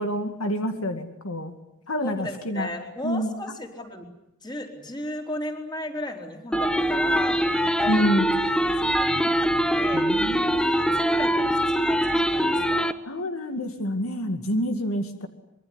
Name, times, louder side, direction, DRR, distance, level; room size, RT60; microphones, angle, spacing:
voice 1, 0.0-1.6 1.9-2.7 3.0-3.3 7.9-8.4 9.9-10.6 13.1-15.3, equal, 75° left, 7 dB, 2.3 m, -27 dB
voice 2, 2.0-4.0 4.4-7.4 7.8-8.0 8.9-10.0 10.6-13.0, left 1 dB, 20° left, 3 dB, 4.2 m, -35 dB
sound 1, 6.5-12.9, equal, 5° left, 1.0 m, -23 dB
25.5 x 23.0 x 9.8 m, 0.83 s
head